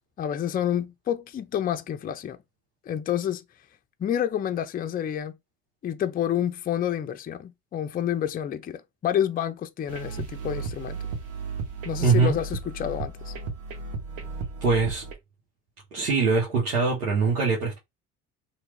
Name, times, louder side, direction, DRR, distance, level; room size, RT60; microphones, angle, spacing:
voice 1, 0.2-2.4 2.9-3.4 4.0-5.3 5.8-11.0 11.8-13.3, left 10 dB, 20° left, 0.4 m, -29 dB
sound 1, 9.9-15.1, right 4 dB, 70° right, 1.1 m, -35 dB
voice 2, 12.0-12.3 14.6-15.0 15.9-17.8, right 4 dB, 90° right, 1.2 m, -22 dB
2.9 x 2.5 x 3.3 m
hypercardioid pair, 70°, 45 cm